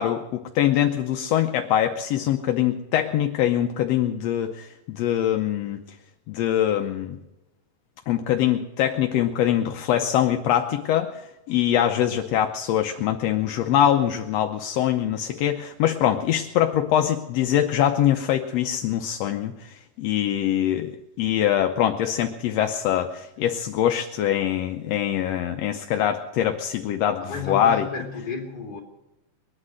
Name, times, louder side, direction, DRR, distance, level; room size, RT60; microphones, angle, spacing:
voice 1, 0.0-5.8 6.3-7.2 8.1-27.9, left 10 dB, 70° left, 5 dB, 1.6 m, -23 dB
voice 2, 27.2-28.8, left 5 dB, 30° left, 1 dB, 3.6 m, -33 dB
22.0 x 9.9 x 6.4 m, 0.98 s
omnidirectional pair, 3.7 m